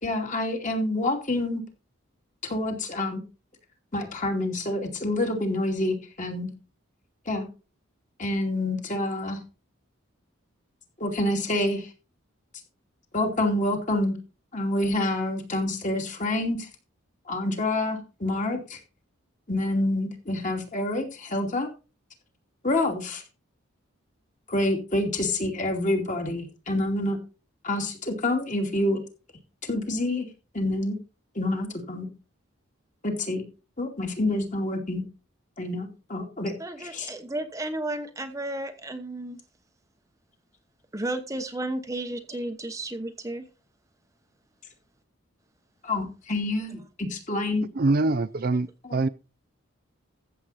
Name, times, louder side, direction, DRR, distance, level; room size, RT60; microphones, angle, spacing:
voice 1, 0.0-1.6 2.4-3.2 3.9-6.5 7.3-7.5 8.2-9.4 11.0-11.9 13.1-14.1 14.5-16.7 17.3-18.8 19.5-21.7 22.6-23.2 24.5-27.2 27.6-29.0 29.6-30.3 30.5-31.0 31.3-32.1 33.0-33.4 33.8-35.0 35.6-37.1 45.8-47.6 48.9-49.0, left 1 dB, 35° left, 2.6 m, -27 dB
voice 2, 36.6-39.4 40.9-43.4, right 1 dB, 15° right, 1.0 m, -33 dB
voice 3, 47.8-49.1, right 2 dB, 45° right, 0.5 m, -24 dB
14.5 x 7.7 x 4.2 m
head